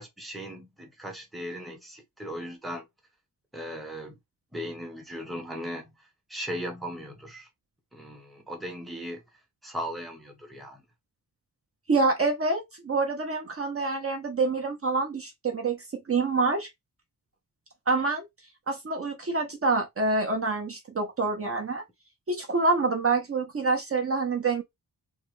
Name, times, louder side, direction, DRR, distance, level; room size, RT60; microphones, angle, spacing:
voice 1, 0.0-2.9 3.5-4.2 4.5-5.9 6.3-7.5 7.9-9.2 9.6-10.8, equal, ahead, 0.7 m, -37 dB
voice 2, 11.9-16.7 17.9-18.3 18.7-21.8 22.3-24.6, right 3 dB, 35° right, 0.7 m, -26 dB
3.0 x 2.2 x 3.1 m
wide cardioid pair, 145°, 39 cm